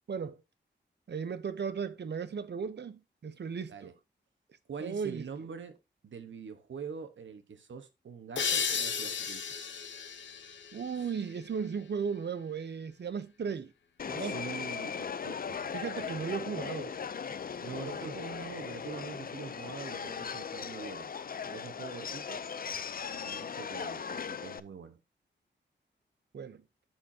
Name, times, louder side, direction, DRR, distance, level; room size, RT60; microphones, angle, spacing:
voice 1, 1.1-3.9 4.8-5.2 10.7-13.7 14.1-14.4 15.7-17.0 17.8-18.2 26.3-26.6, right 6 dB, 65° right, 0.8 m, -36 dB
voice 2, 4.7-5.8 6.0-9.4 11.0-11.1 14.2-16.4 17.6-21.1 21.4-22.4 23.2-25.0, right 6 dB, 85° right, 1.2 m, -44 dB
sound 1, 8.4-11.8, left 6 dB, 75° left, 0.9 m, -35 dB
Subway metro underground, 14.0-24.6, left 6 dB, 50° left, 0.5 m, -38 dB
12.5 x 4.5 x 2.8 m
wide cardioid pair, 105°, 19 cm